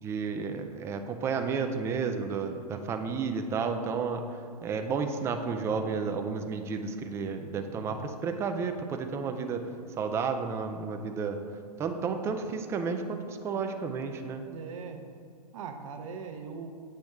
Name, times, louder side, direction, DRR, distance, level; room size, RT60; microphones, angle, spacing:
voice 1, 0.0-4.3 4.6-9.7 10.0-11.4 11.8-14.4, right 5 dB, 15° right, 6 dB, 0.3 m, -32 dB
voice 2, 7.5-8.0 14.5-15.0 15.5-16.7, right 5 dB, 55° right, 5 dB, 0.7 m, -41 dB
7.7 x 5.1 x 3.5 m, 2.3 s
hypercardioid pair, 115°, 21 cm